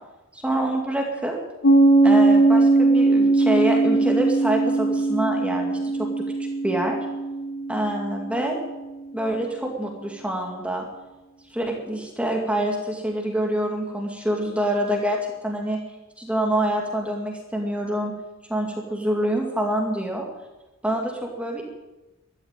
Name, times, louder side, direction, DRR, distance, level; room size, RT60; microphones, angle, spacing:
voice 1, 0.3-1.4 2.0-6.1 6.6-7.0 7.7-8.6 9.1-10.9 11.5-15.2 15.4-15.8 16.2-18.1 18.5-20.2 20.8-21.6, right 1 dB, 5° right, 0 dB, 2.3 m, -26 dB
Piano, 1.6-8.9, right 2 dB, 75° left, 3.0 m, -20 dB
14.0 x 11.5 x 9.1 m, 1.1 s
head